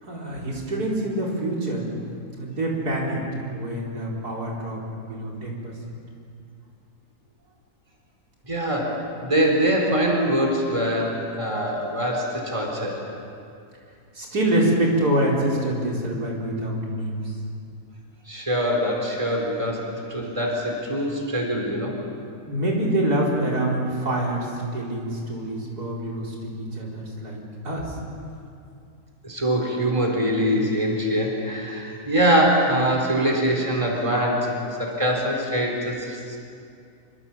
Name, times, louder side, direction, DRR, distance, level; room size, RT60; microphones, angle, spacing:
voice 1, 0.0-1.9 2.4-5.7 14.1-17.3 22.5-28.0, right 1 dB, 85° right, -3 dB, 5.0 m, -26 dB
voice 2, 8.5-13.0 18.3-22.0 29.2-36.4, equal, 20° right, 0 dB, 4.1 m, -23 dB
26.0 x 25.5 x 7.4 m, 2.4 s
omnidirectional pair, 1.6 m